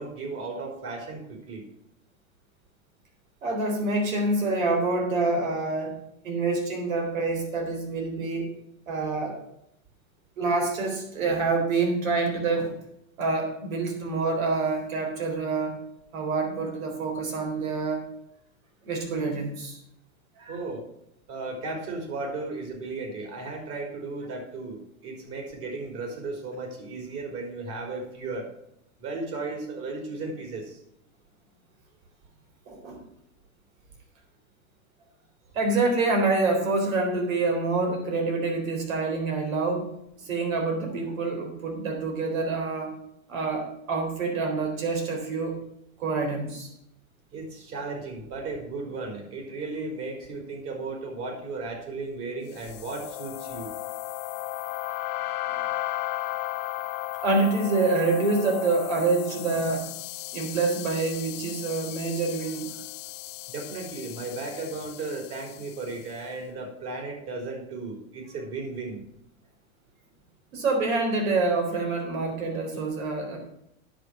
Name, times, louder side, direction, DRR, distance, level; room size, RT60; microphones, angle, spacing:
voice 1, 0.0-1.7 20.5-20.8 21.3-28.5 29.0-30.8 47.3-53.7 63.5-69.0, right 3 dB, 35° right, 2 dB, 3.7 m, -35 dB
voice 2, 3.4-8.5 8.9-9.4 10.4-12.7 13.2-15.8 16.1-18.0 18.8-19.8 20.4-20.6 32.7-33.0 35.5-39.9 40.3-42.9 43.3-45.6 46.0-46.7 55.5-55.6 57.2-59.9 60.3-62.7 70.5-73.4, right 3 dB, 80° right, 3 dB, 4.0 m, -27 dB
sound 1, 52.6-65.9, left 15 dB, 45° left, 0.7 m, -35 dB
10.0 x 6.8 x 6.0 m, 0.77 s
supercardioid pair, 130°, 40 cm